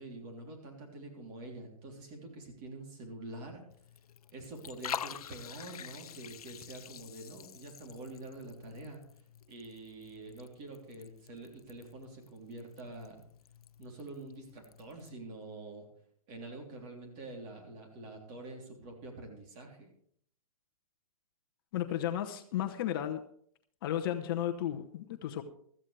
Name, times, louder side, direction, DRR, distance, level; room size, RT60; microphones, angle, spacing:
voice 1, 0.0-3.6 4.3-9.0 9.5-13.2 13.8-15.9 16.3-19.9, right 2 dB, 30° right, 1 dB, 3.3 m, -46 dB
Liquid, 3.7-15.1, left 9 dB, 80° left, 0.6 m, -47 dB
voice 2, 21.7-23.2 23.8-25.4, left 11 dB, 40° left, 6 dB, 0.9 m, -34 dB
16.5 x 13.5 x 3.3 m, 0.62 s
hypercardioid pair, 155°, 19 cm